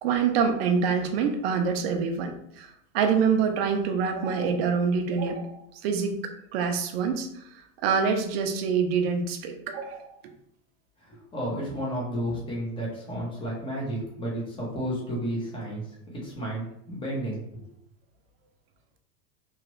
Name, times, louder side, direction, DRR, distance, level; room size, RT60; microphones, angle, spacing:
voice 1, 0.0-6.2 6.5-10.2, right 6 dB, 45° right, 5 dB, 0.5 m, -26 dB
voice 2, 11.0-15.8 16.1-17.6, right 1 dB, 10° left, -5 dB, 0.8 m, -32 dB
3.1 x 2.4 x 3.0 m, 0.73 s
supercardioid pair, 155°, 46 cm